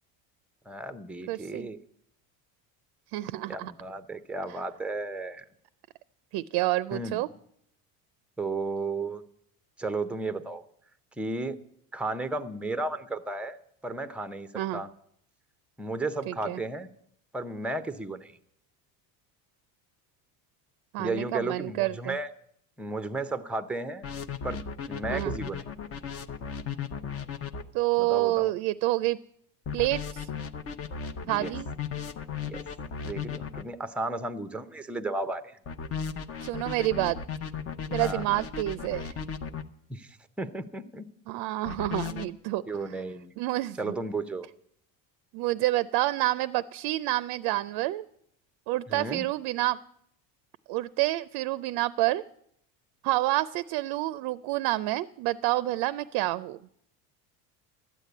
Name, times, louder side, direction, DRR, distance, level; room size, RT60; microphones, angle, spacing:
voice 1, 0.7-1.8 3.5-5.4 6.9-7.2 8.4-9.2 9.8-10.6 11.2-11.6 11.9-14.9 15.8-16.9 17.3-18.4 21.0-22.3 22.8-24.1 24.4-25.6 28.0-28.6 31.2-31.5 32.4-32.6 33.0-35.6 38.0-38.2 39.9-41.0 42.7-43.3 43.8-44.5 48.9-49.2, right 2 dB, 5° right, 11 dB, 0.5 m, -34 dB
voice 2, 1.3-1.7 3.1-3.7 4.5-4.6 6.3-7.3 14.5-14.8 16.3-16.6 20.9-22.2 25.1-25.3 27.7-29.2 29.7-30.3 31.3-31.7 36.4-37.2 37.9-39.1 41.3-42.6 43.4-43.9 45.3-48.1 48.7-49.8 50.7-52.2 53.0-56.6, right 17 dB, 60° right, 16 dB, 0.5 m, -28 dB
sound 1, 24.0-27.6 29.7-33.6 35.7-39.6 41.7-42.3, left 6 dB, 35° left, 0.7 m, -35 dB
12.5 x 8.3 x 9.3 m, 0.70 s
cardioid pair, 140°, 42 cm